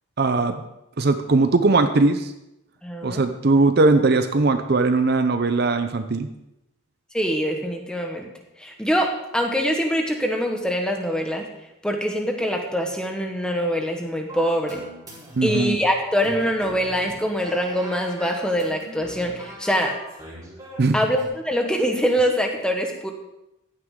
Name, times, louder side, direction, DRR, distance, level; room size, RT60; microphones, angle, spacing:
voice 1, 0.2-0.6 1.0-2.3 3.0-6.3 15.4-15.8 20.8-21.0, right 3 dB, 50° right, 8 dB, 0.6 m, -19 dB
voice 2, 2.8-3.2 7.1-8.3 8.6-11.5 11.8-14.8 15.4-19.9 20.9-23.1, equal, 5° left, 3 dB, 1.2 m, -24 dB
sound 1, 14.3-21.3, equal, 20° right, 3.9 m, -40 dB
15.0 x 9.6 x 3.7 m, 0.89 s
head